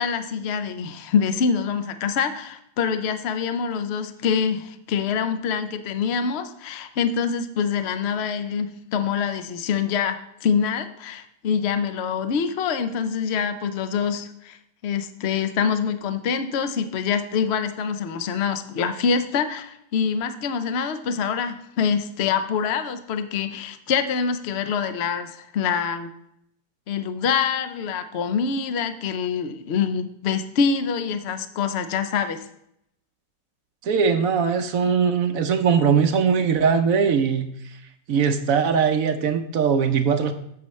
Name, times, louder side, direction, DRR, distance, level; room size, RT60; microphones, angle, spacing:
voice 1, 0.0-14.6 14.8-26.1 26.9-32.4, left 6 dB, 60° left, 10 dB, 0.6 m, -25 dB
voice 2, 33.8-37.5 38.1-40.3, right 6 dB, 65° right, 8 dB, 0.9 m, -20 dB
10.5 x 7.6 x 3.2 m, 0.75 s
omnidirectional pair, 1.9 m